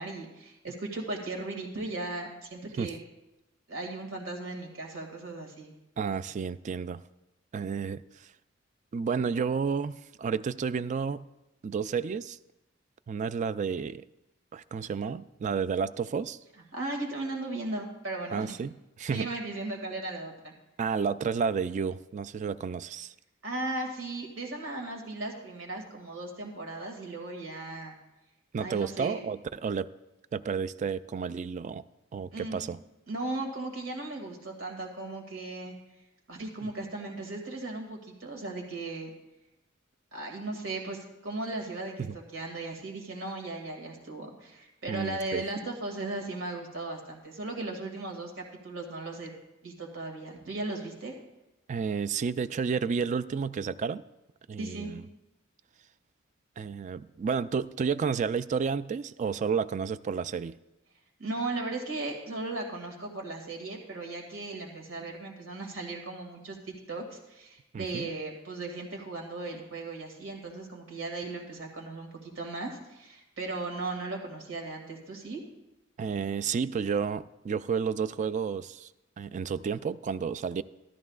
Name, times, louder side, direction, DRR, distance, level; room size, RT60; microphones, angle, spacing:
voice 1, 0.0-3.0 3.7-5.7 16.7-18.5 19.1-20.6 23.4-28.0 28.6-29.2 32.3-32.6 33.1-35.8 36.3-39.1 40.1-42.1 42.3-49.3 49.6-51.2 54.6-54.9 61.2-75.4, right 2 dB, 80° right, 1 dB, 2.2 m, -37 dB
voice 2, 6.0-7.0 7.5-8.0 8.9-11.2 11.6-12.4 13.1-14.0 14.5-16.4 18.3-19.3 20.8-23.1 28.5-29.9 30.3-31.8 32.1-32.8 42.0-42.2 44.9-45.4 51.7-54.0 54.5-55.1 56.6-60.6 67.7-68.1 76.0-78.9 79.2-80.6, right 6 dB, 40° right, 15 dB, 0.3 m, -31 dB
13.5 x 13.0 x 2.4 m, 0.95 s
head